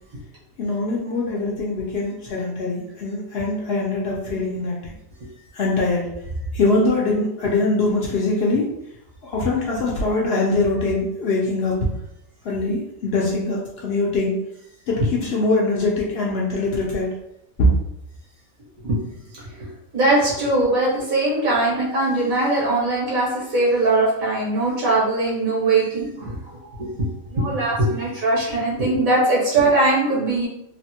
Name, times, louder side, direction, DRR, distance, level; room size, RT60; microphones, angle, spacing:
voice 1, 0.6-4.9 5.5-6.1 6.5-8.7 9.2-11.9 12.4-14.4 14.9-17.1 17.6-17.7, left 2 dB, 60° left, -3 dB, 0.7 m, -22 dB
voice 2, 19.6-27.0 27.3-30.5, right 2 dB, 80° right, -6 dB, 1.7 m, -21 dB
3.3 x 2.1 x 2.8 m, 0.81 s
omnidirectional pair, 1.4 m